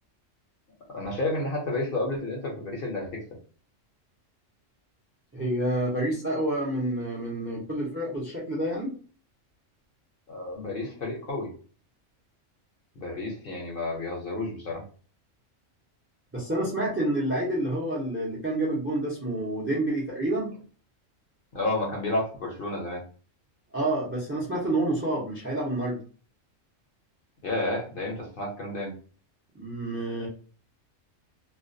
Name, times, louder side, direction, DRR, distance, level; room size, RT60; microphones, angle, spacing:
voice 1, 0.9-3.2 10.3-11.5 13.0-14.8 21.5-23.0 27.4-28.9, left 2 dB, 55° left, -1 dB, 0.7 m, -31 dB
voice 2, 5.3-8.9 16.3-20.5 23.7-26.0 29.6-30.3, right 1 dB, 20° right, -2 dB, 0.3 m, -28 dB
2.3 x 2.2 x 2.5 m, 0.40 s
omnidirectional pair, 1.3 m